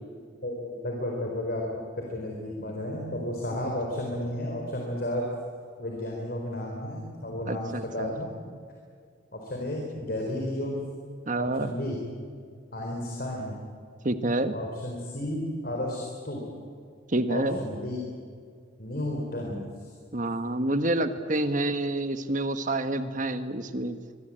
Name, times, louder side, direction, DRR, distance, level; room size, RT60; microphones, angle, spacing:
voice 1, 0.4-5.3 5.8-8.3 9.3-10.8 11.4-12.0 12.7-13.6 14.5-16.4 17.3-18.0 18.8-19.9, left 1 dB, 50° left, 0 dB, 4.3 m, -32 dB
voice 2, 7.5-8.1 11.3-11.7 14.0-14.5 17.1-17.6 20.1-24.0, right 1 dB, 40° right, 9 dB, 1.5 m, -28 dB
24.0 x 24.0 x 9.0 m, 2.1 s
head